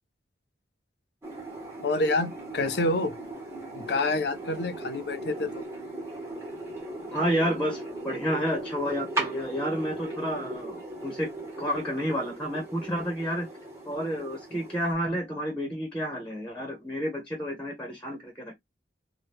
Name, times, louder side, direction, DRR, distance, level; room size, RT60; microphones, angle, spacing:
sound 1, 1.2-14.9, right 2 dB, 15° right, 1.1 m, -38 dB
voice 1, 1.8-3.2 3.7-5.7, left 2 dB, 60° left, 0.6 m, -27 dB
voice 2, 7.1-13.5 13.8-18.5, equal, 5° left, 0.9 m, -30 dB
2.8 x 2.2 x 3.4 m
head